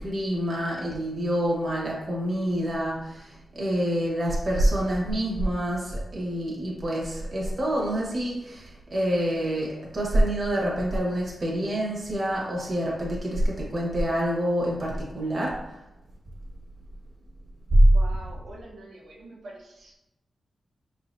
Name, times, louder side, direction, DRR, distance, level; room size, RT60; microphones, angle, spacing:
voice 1, 0.0-15.8 17.7-17.8, right 1 dB, 30° right, -3 dB, 1.1 m, -27 dB
voice 2, 17.9-19.9, right 2 dB, 90° right, -4 dB, 0.8 m, -44 dB
5.7 x 3.4 x 2.6 m, 0.94 s
wide cardioid pair, 165°, 0 cm